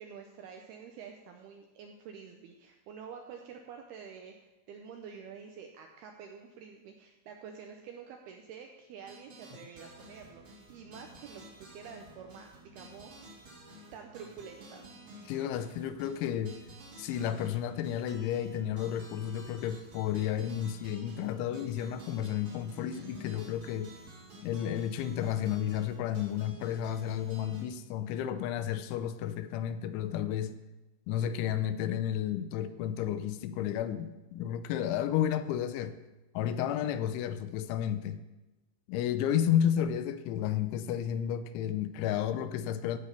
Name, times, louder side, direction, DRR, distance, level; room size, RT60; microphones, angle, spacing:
voice 1, 0.0-13.5 13.9-14.8, right 6 dB, 80° right, 3 dB, 2.3 m, -48 dB
sound 1, 9.1-27.7, right 1 dB, 45° right, 1.9 m, -52 dB
voice 2, 15.3-16.6 17.0-24.0 24.4-30.6 31.1-36.0 36.3-38.2 38.9-43.0, left 10 dB, 85° left, 12 dB, 3.0 m, -32 dB
15.0 x 5.2 x 6.7 m, 1.1 s
omnidirectional pair, 5.4 m